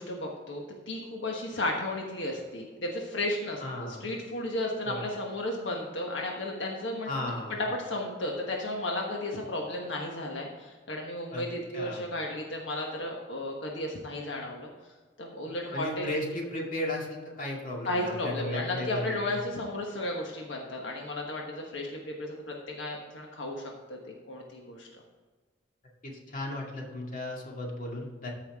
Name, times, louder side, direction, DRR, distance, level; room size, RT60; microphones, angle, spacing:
voice 1, 0.0-7.3 7.6-14.7 15.2-16.1 17.8-24.9, left 1 dB, 85° left, 0 dB, 1.3 m, -34 dB
voice 2, 3.6-4.1 4.8-5.0 7.1-7.6 11.3-11.4 11.7-12.1 15.7-19.4 26.0-28.3, left 1 dB, 50° left, -2 dB, 2.2 m, -35 dB
14.0 x 5.7 x 3.6 m, 1.4 s
head